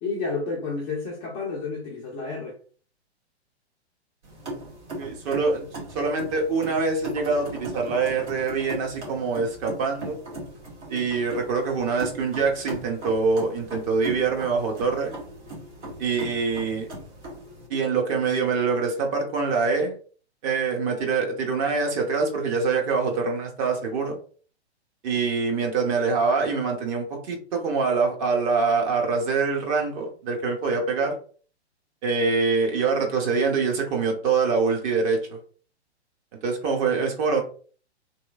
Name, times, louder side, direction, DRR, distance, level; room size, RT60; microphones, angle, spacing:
voice 1, 0.0-2.6, left 4 dB, 15° left, 0.4 m, -30 dB
sound 1, 4.2-17.7, right 1 dB, 80° right, 1.4 m, -38 dB
voice 2, 5.0-10.2 10.9-15.1 16.0-16.9 17.7-20.0 20.4-24.2 25.0-31.2 32.0-35.4 36.4-37.4, right 4 dB, 30° right, 0.8 m, -25 dB
3.1 x 3.0 x 2.3 m
figure-of-eight pair, 115°, 34 cm